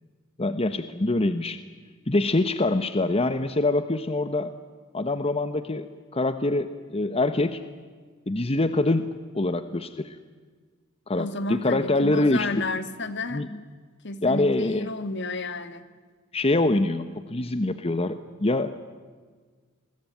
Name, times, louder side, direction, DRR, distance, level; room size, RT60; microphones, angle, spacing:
voice 1, 0.4-1.6 2.1-4.5 4.9-5.9 6.1-7.6 8.3-10.2 11.1-12.7 13.3-13.6 14.2-14.9 16.3-18.8, left 2 dB, 30° left, 11 dB, 1.0 m, -25 dB
voice 2, 11.2-13.4 14.0-15.8, left 3 dB, 60° left, 11 dB, 1.9 m, -32 dB
28.5 x 22.0 x 9.2 m, 1.5 s
head